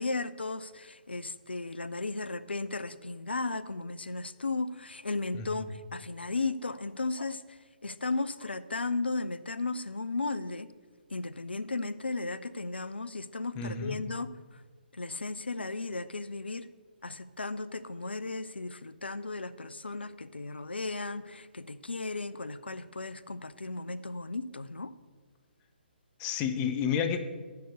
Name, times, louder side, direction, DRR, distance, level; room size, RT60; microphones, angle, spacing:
voice 1, 0.0-10.7 11.1-14.6 14.9-16.7 17.0-24.9, left 3 dB, 80° left, 15 dB, 0.5 m, -35 dB
voice 2, 13.6-14.0 26.2-27.2, left 7 dB, 20° left, 7 dB, 0.7 m, -31 dB
7.6 x 6.8 x 6.6 m, 1.4 s
figure-of-eight pair, 135°, 6 cm